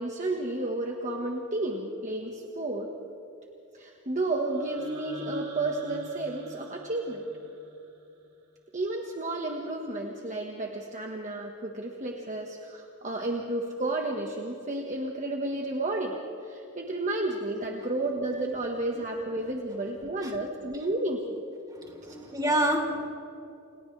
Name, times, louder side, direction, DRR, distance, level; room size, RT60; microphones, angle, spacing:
voice 1, 0.0-2.9 3.7-7.3 8.7-21.4 22.1-22.2, right 2 dB, 35° right, 1 dB, 1.5 m, -32 dB
sound 1, 4.5-8.5, right 1 dB, 75° right, 3.9 m, -47 dB
voice 2, 21.7-23.1, right 1 dB, 20° right, 0 dB, 3.8 m, -28 dB
29.0 x 29.0 x 3.3 m, 2.7 s
head